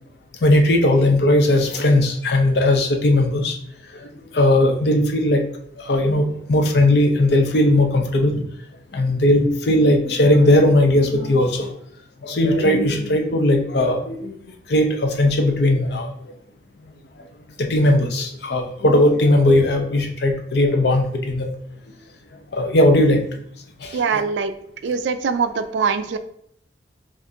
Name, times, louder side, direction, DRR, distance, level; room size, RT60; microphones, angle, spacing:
voice 1, 0.4-3.5 4.3-5.4 5.8-8.4 8.9-11.7 12.2-14.3 14.7-16.1 17.7-21.5 22.5-23.2 23.8-24.0, left 1 dB, 65° left, 3 dB, 0.6 m, -17 dB
voice 2, 23.9-24.5 24.8-26.2, right 5 dB, 80° right, 9 dB, 0.4 m, -22 dB
5.1 x 2.5 x 2.7 m, 0.68 s
head